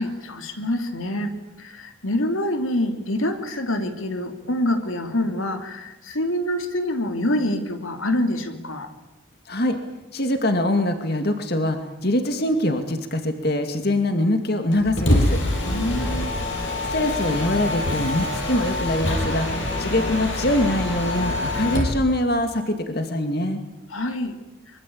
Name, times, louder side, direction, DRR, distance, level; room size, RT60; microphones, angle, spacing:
voice 1, 0.0-8.9 15.6-16.3 23.9-24.4, left 1 dB, 80° left, 7 dB, 2.9 m, -26 dB
voice 2, 9.5-9.8 10.1-15.4 16.9-19.5 19.8-23.6, left 1 dB, 50° left, 7 dB, 2.3 m, -23 dB
Mechanisms, 14.7-22.0, left 1 dB, 65° left, 7.7 m, -25 dB
25.0 x 24.5 x 8.8 m, 0.93 s
head